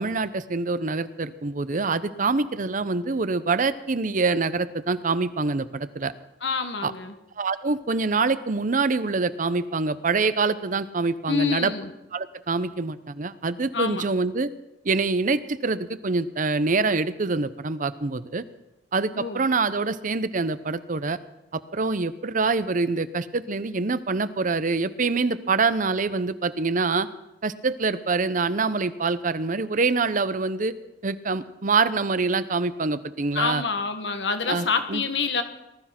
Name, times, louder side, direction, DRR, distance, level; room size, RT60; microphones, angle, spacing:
voice 1, 0.0-6.1 6.8-6.9 7.4-11.7 12.1-14.5 14.8-18.4 18.9-21.2 21.5-27.1 27.4-30.7 31.0-33.6 34.5-35.0, right 4 dB, 50° right, 14 dB, 0.8 m, -25 dB
voice 2, 6.4-7.1 11.3-11.9 13.7-14.0 19.1-19.4 33.3-35.4, left 5 dB, 85° left, 8 dB, 1.6 m, -27 dB
19.5 x 12.5 x 5.9 m, 0.91 s
head